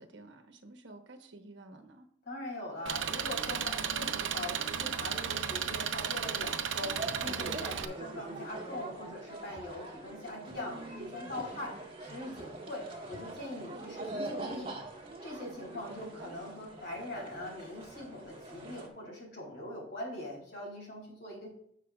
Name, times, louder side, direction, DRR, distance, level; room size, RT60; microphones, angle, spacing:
voice 1, 0.0-2.1 10.4-11.1 13.7-14.1 16.2-16.3, right 2 dB, 65° right, 5 dB, 1.2 m, -50 dB
voice 2, 2.3-14.7 15.2-21.5, left 1 dB, 60° left, -2 dB, 3.8 m, -42 dB
Engine, 2.9-7.9, right 7 dB, 85° right, 0.7 m, -34 dB
sound 1, 7.0-18.9, right 2 dB, 30° right, 1.7 m, -43 dB
16.0 x 5.7 x 2.4 m, 0.71 s
head